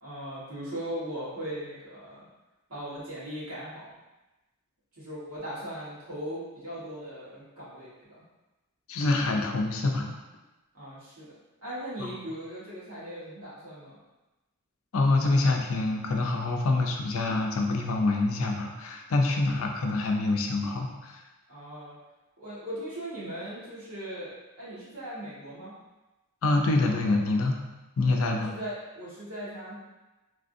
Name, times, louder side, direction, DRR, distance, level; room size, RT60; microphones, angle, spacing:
voice 1, 0.0-2.2 2.7-3.9 5.0-8.2 10.7-11.3 11.6-14.0 21.5-21.9 22.4-25.7 28.2-29.7, equal, 85° right, -9 dB, 1.5 m, -39 dB
voice 2, 8.9-10.1 12.0-12.1 14.9-21.2 26.4-27.6 28.0-28.5, left 2 dB, 70° left, 2 dB, 0.4 m, -26 dB
3.3 x 2.5 x 2.6 m, 1.1 s
head